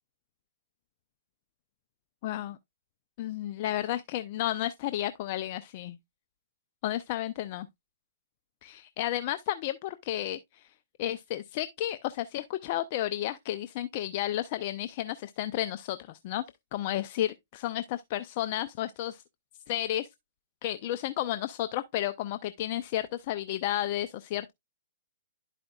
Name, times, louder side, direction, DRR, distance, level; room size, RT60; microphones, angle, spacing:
voice 1, 2.2-2.6 3.2-6.0 6.8-7.7 8.6-10.7 11.0-16.4 16.7-19.2 19.7-20.1 20.6-24.5, left 13 dB, 40° left, 0.4 m, -32 dB
11.5 x 5.0 x 2.3 m
hypercardioid pair, 145°, 0 cm